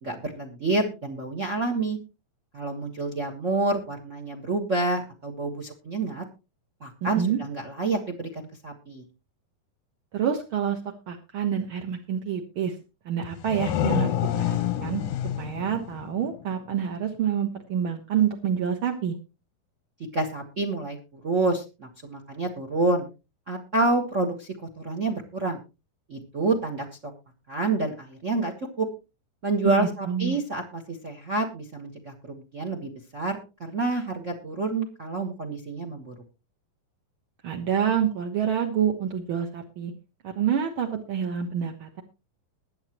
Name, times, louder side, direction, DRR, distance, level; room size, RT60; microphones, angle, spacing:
voice 1, 0.0-2.0 2.5-6.2 6.8-9.0 20.1-21.0 21.2-23.1 23.5-25.6 26.1-27.1 27.5-28.9 29.4-36.1, right 2 dB, 80° right, 5 dB, 0.6 m, -28 dB
voice 2, 7.0-7.4 10.1-10.8 11.1-12.7 13.0-15.0 15.4-19.1 29.6-30.4 37.4-39.9 40.2-42.0, right 8 dB, 60° right, 3 dB, 1.3 m, -27 dB
sound 1, 13.2-16.8, left 11 dB, 70° left, 1.5 m, -28 dB
21.5 x 8.1 x 3.0 m, 0.30 s
omnidirectional pair, 4.1 m